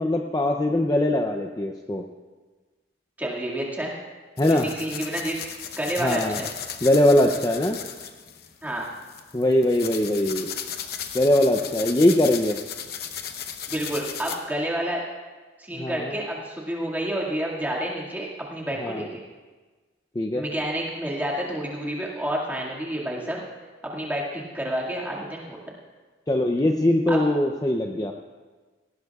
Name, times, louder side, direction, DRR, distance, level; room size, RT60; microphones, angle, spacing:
voice 1, 0.0-2.0 4.4-4.7 6.0-6.4 6.8-7.8 9.3-10.5 11.1-12.6 15.7-16.2 18.8-19.1 20.2-20.4 26.3-28.1, left 1 dB, 20° left, 3 dB, 0.5 m, -21 dB
voice 2, 3.2-3.9 4.5-5.4 5.8-6.5 8.6-8.8 13.7-15.0 15.6-19.2 20.3-23.4 23.8-25.6 27.1-27.2, right 1 dB, 10° right, -4 dB, 2.0 m, -29 dB
sound 1, 4.4-14.4, left 8 dB, 55° left, 0.8 m, -36 dB
17.5 x 17.5 x 2.4 m, 1.3 s
head